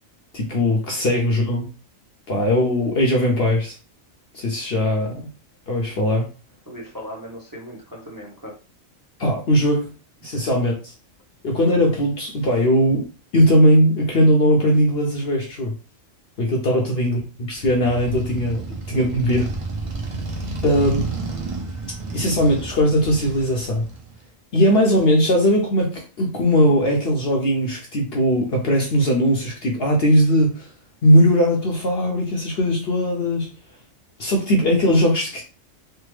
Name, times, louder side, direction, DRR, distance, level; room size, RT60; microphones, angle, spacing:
voice 1, 0.3-1.7 2.3-3.8 4.3-5.3 5.7-6.3 9.2-9.9 10.2-10.9 11.4-13.0 13.3-15.7 16.4-19.5 20.6-21.1 22.1-23.9 24.5-30.7 31.0-33.5 34.2-35.4, equal, 55° left, 0 dB, 0.8 m, -19 dB
voice 2, 6.7-8.5 16.7-16.8 18.9-19.2, equal, 20° right, -3 dB, 0.8 m, -38 dB
Motorcycle, 17.5-24.2, right 3 dB, 40° right, 0.4 m, -31 dB
3.4 x 2.0 x 3.1 m, 0.33 s
omnidirectional pair, 1.4 m